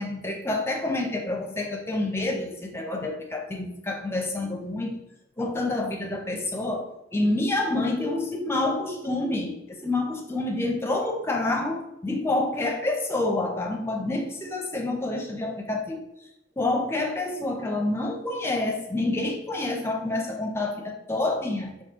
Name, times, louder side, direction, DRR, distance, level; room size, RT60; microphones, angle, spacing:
voice 1, 0.0-4.9 5.4-16.0 16.6-21.8, left 2 dB, 15° left, 1 dB, 0.6 m, -28 dB
5.3 x 2.7 x 3.6 m, 0.83 s
head